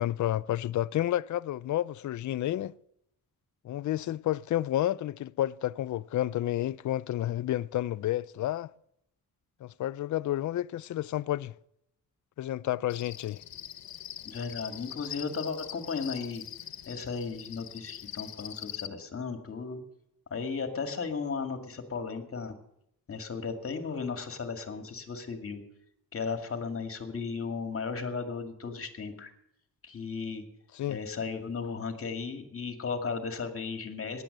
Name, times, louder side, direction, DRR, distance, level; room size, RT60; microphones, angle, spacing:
voice 1, 0.0-2.7 3.6-8.7 9.6-11.5 12.4-13.4 30.7-31.0, left 13 dB, 55° left, 0.5 m, -30 dB
Cricket, 12.9-18.9, left 10 dB, 75° left, 1.4 m, -43 dB
voice 2, 14.2-16.4 16.9-19.8 20.3-22.6 23.1-25.6 26.1-29.3 29.8-30.4 30.9-34.2, left 5 dB, 40° left, 2.2 m, -35 dB
15.5 x 10.5 x 6.6 m
wide cardioid pair, 140°, 36 cm